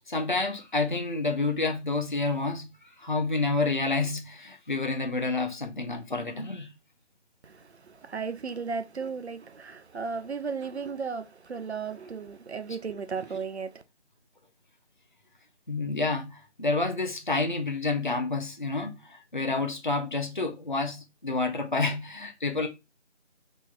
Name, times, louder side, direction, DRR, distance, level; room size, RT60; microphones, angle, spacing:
voice 1, 0.1-6.7 15.7-22.7, left 3 dB, 45° left, 0.5 m, -29 dB
voice 2, 7.4-13.8, right 5 dB, 65° right, 0.5 m, -35 dB
4.0 x 3.0 x 2.3 m
figure-of-eight pair, 175°, 35 cm